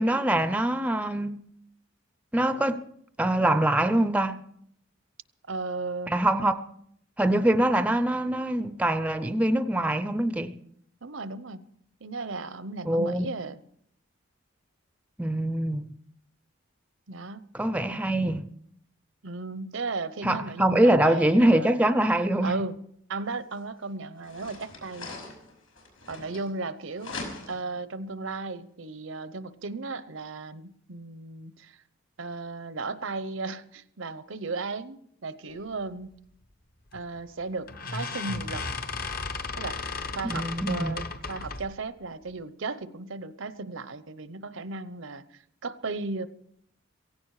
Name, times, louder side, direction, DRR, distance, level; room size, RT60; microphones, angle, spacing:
voice 1, 0.0-1.4 2.3-2.8 3.2-4.4 6.1-6.6 7.2-10.5 12.8-13.3 15.2-15.9 17.5-18.5 20.2-22.6 40.2-41.0, right 1 dB, 5° right, 0.6 m, -24 dB
voice 2, 5.5-6.1 11.0-11.6 12.0-13.6 17.1-17.5 19.2-21.8 22.4-22.8 23.1-25.1 26.1-27.2 27.5-31.8 32.2-36.1 36.9-38.7 39.6-39.8 40.1-46.3, right 3 dB, 70° right, 0.8 m, -35 dB
sound 1, 23.5-23.6 24.2-26.7 27.0-27.8, left 3 dB, 85° left, 6.0 m, -41 dB
sound 2, 36.9-37.2 37.7-41.8, left 4 dB, 45° left, 1.1 m, -35 dB
17.0 x 16.0 x 4.8 m
head